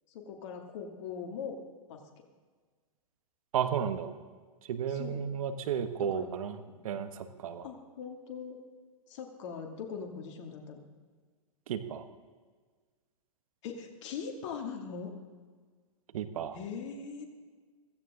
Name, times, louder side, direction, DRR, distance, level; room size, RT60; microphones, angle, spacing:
voice 1, 0.1-1.6 1.9-2.0 4.9-5.2 6.0-6.3 6.7-6.8 7.6-8.6 9.1-10.9 13.6-15.1 16.5-17.2, left 6 dB, 55° left, 3 dB, 2.7 m, -41 dB
voice 2, 3.5-4.2 4.7-7.7 11.7-12.0 16.1-16.6, right 8 dB, 65° right, 10 dB, 1.3 m, -33 dB
16.0 x 16.0 x 3.8 m, 1.5 s
hypercardioid pair, 125°, 19 cm